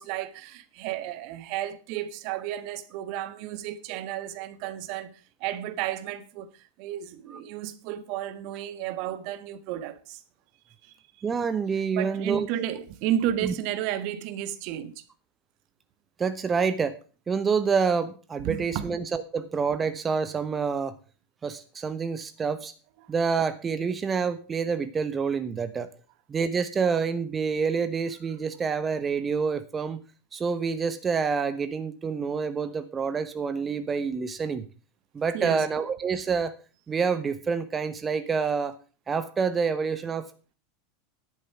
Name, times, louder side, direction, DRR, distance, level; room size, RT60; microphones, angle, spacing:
voice 1, 0.0-10.2 10.8-10.9 11.9-15.0 18.4-18.9 35.3-35.7, right 11 dB, 55° right, 1.3 m, -32 dB
voice 2, 11.2-12.5 13.4-13.5 16.2-16.9 17.3-20.9 21.4-22.7 23.1-25.9 26.3-30.0 30.3-34.6 35.1-36.5 36.9-38.7 39.1-40.3, right 5 dB, 25° right, 1.0 m, -27 dB
11.0 x 8.6 x 6.0 m
figure-of-eight pair, 85°, 0 cm